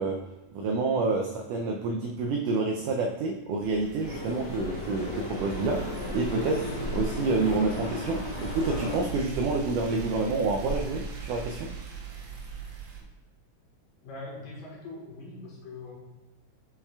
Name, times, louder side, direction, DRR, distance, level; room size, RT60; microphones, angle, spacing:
voice 1, 0.0-11.7, right 3 dB, 85° right, 2 dB, 1.8 m, -28 dB
sound 1, 3.6-13.0, right 3 dB, 70° right, 1.5 m, -38 dB
sound 2, 4.0-9.0, left 2 dB, 40° left, 2.3 m, -36 dB
sound 3, 5.4-11.5, equal, 90° left, 1.7 m, -48 dB
voice 2, 14.0-16.0, left 2 dB, 65° left, -4 dB, 2.8 m, -42 dB
8.5 x 4.8 x 2.3 m, 1.2 s
omnidirectional pair, 4.2 m